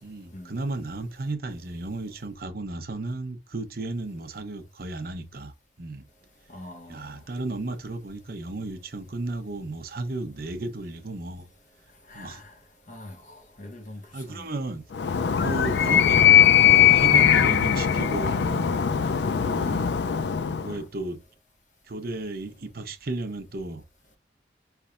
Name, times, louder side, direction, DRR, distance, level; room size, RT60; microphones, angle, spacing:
voice 1, 0.0-6.1 6.9-11.5 12.1-12.4 14.1-14.8 15.4-18.8 19.4-20.0 20.6-21.2 21.9-23.8, right 2 dB, 55° right, 0.8 m, -34 dB
voice 2, 6.5-7.1 12.1-12.4 12.9-14.0 14.3-14.5 15.7-15.9, left 1 dB, 45° left, 1.0 m, -43 dB
Animal, 14.9-20.8, left 9 dB, 70° left, 0.4 m, -20 dB
5.2 x 3.4 x 2.4 m
head